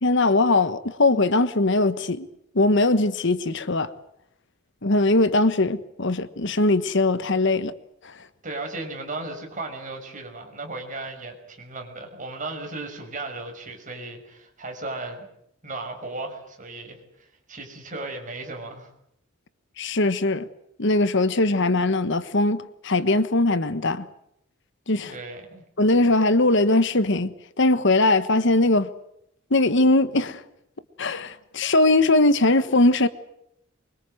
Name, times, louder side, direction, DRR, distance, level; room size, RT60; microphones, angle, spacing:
voice 1, 0.0-2.3 2.5-3.9 4.8-7.7 8.0-8.1 19.8-20.5 20.8-24.0 24.9-25.1 25.8-28.9 29.5-30.4 31.0-33.1, left 2 dB, 60° left, 1.3 m, -20 dB
voice 2, 8.4-15.3 15.6-18.9 25.1-25.6, right 2 dB, 40° right, 6.2 m, -36 dB
24.5 x 24.0 x 7.8 m
head